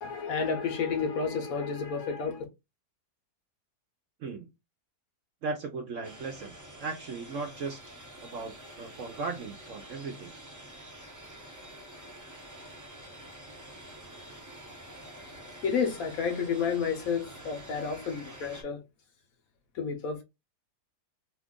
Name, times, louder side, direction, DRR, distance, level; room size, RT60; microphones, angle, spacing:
voice 1, 0.0-2.4 15.6-18.8 19.7-20.2, left 6 dB, 65° left, 1.0 m, -30 dB
voice 2, 5.4-7.8 8.2-10.3, right 4 dB, 65° right, 0.8 m, -37 dB
sound 1, 6.0-18.6, right 1 dB, 30° right, 0.3 m, -48 dB
2.8 x 2.5 x 3.5 m
omnidirectional pair, 1.8 m